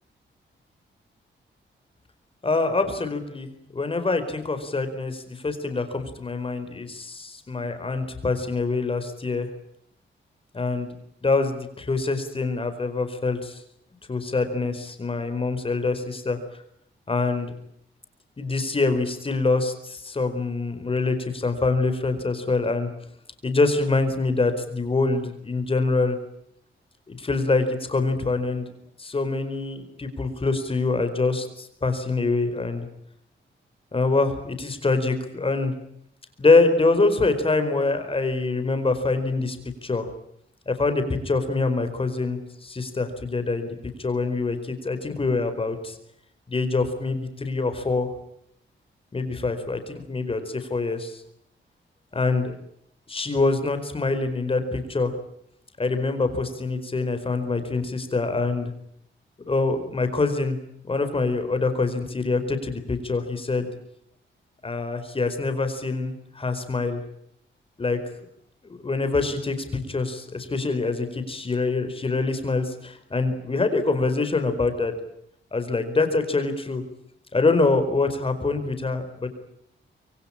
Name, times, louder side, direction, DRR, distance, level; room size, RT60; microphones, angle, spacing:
voice 1, 2.4-9.5 10.5-10.9 11.2-13.6 14.1-16.4 17.1-17.5 18.4-22.9 23.4-26.2 27.1-28.7 29.0-32.9 33.9-35.7 36.4-39.6 39.8-40.1 40.7-46.0 46.5-48.1 49.1-51.2 52.1-52.6 53.1-55.1 55.8-58.7 59.5-60.6 60.8-63.7 64.6-67.0 67.8-68.0 68.6-74.9 75.5-76.8 77.3-79.3, left 3 dB, 25° left, 8 dB, 4.6 m, -25 dB
26.0 x 23.5 x 8.7 m, 0.72 s
wide cardioid pair, 160°, 20 cm